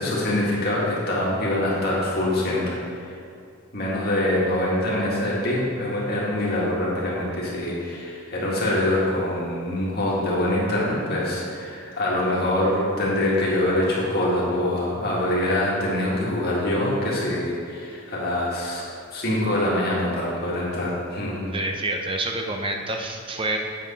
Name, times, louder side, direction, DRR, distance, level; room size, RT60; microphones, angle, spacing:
voice 1, 0.0-2.8 3.0-3.2 3.7-18.8 19.1-21.4, left 1 dB, 45° left, -5 dB, 2.0 m, -24 dB
voice 2, 21.5-23.6, right 2 dB, 25° right, 3 dB, 0.5 m, -27 dB
7.8 x 7.6 x 4.3 m, 2.4 s
head